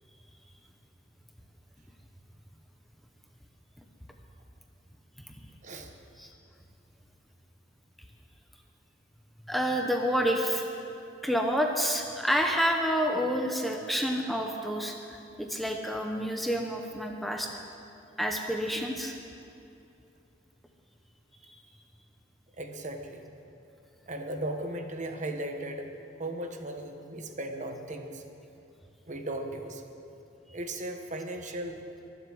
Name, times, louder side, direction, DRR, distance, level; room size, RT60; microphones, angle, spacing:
voice 1, 9.5-10.7 11.2-17.5 18.2-19.1, equal, ahead, 2 dB, 0.9 m, -29 dB
voice 2, 22.6-23.3 24.1-25.9 26.2-28.2 29.1-29.8 30.5-31.8, right 1 dB, 40° right, 5 dB, 1.3 m, -36 dB
23.0 x 7.9 x 7.9 m, 2.6 s
head